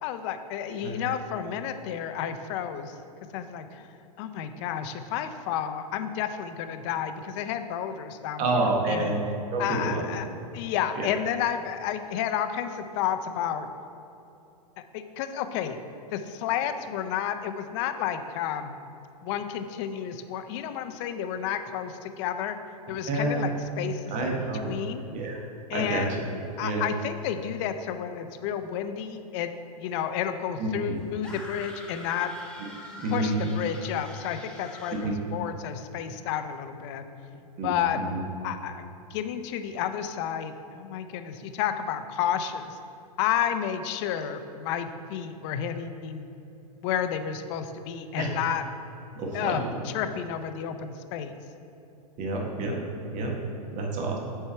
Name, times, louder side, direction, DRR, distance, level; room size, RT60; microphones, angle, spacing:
voice 1, 0.0-2.9 3.3-3.9 4.2-8.4 8.9-9.1 9.6-10.2 10.5-13.7 14.9-15.8 16.1-18.7 19.2-22.6 22.9-24.4 24.6-25.0 25.7-26.1 26.6-29.5 29.8-32.3 33.1-37.1 37.6-38.0 38.4-42.8 43.2-46.3 46.8-48.6 49.3-51.4, left 9 dB, 45° left, 9 dB, 0.5 m, -31 dB
voice 2, 8.4-9.2 9.5-10.0 11.0-11.1 23.1-23.4 24.1-24.7 25.1-25.4 25.7-26.1 26.6-26.8 30.6-30.9 33.0-33.4 35.0-35.1 37.6-38.2 48.2-48.3 49.1-49.7 52.2-52.8 53.1-53.4 53.7-54.2, right 2 dB, 40° right, 0 dB, 1.3 m, -28 dB
sound 1, 31.2-35.1, left 1 dB, 5° left, 1.0 m, -45 dB
6.7 x 4.5 x 4.5 m, 2.8 s
hypercardioid pair, 105°, 20 cm